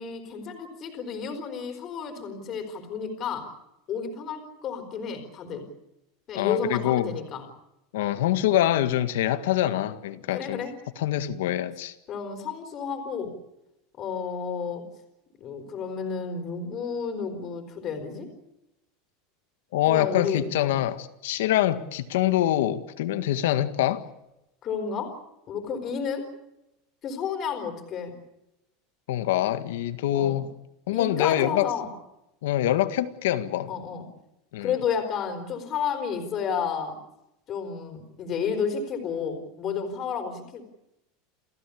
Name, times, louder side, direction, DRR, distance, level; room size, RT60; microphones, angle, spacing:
voice 1, 0.0-3.5 3.9-5.7 6.3-7.4 10.3-10.7 12.1-13.3 14.0-14.9 15.4-18.3 19.9-20.8 24.6-25.1 25.5-26.3 27.0-28.1 30.1-30.4 30.9-31.9 33.7-34.1 34.6-37.0 37.5-40.6, left 6 dB, 25° left, 4.1 m, -31 dB
voice 2, 6.4-7.1 7.9-10.6 11.0-11.9 19.7-24.0 29.1-30.5 30.9-31.7 32.4-33.7 34.5-34.7, left 12 dB, 80° left, 1.8 m, -25 dB
29.0 x 15.5 x 8.6 m
supercardioid pair, 180°, 0 cm